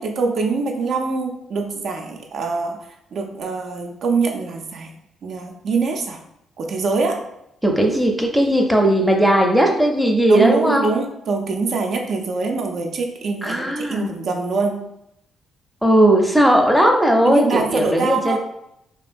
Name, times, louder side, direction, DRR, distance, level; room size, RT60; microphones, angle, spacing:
voice 1, 0.0-4.9 5.2-6.2 6.6-7.3 10.3-14.9 17.2-18.4, right 4 dB, 65° right, 3 dB, 0.3 m, -24 dB
voice 2, 7.6-10.9 13.4-14.1 15.8-18.4, right 1 dB, ahead, 2 dB, 0.5 m, -17 dB
2.8 x 2.2 x 2.5 m, 0.80 s
cardioid pair, 90°, 0 cm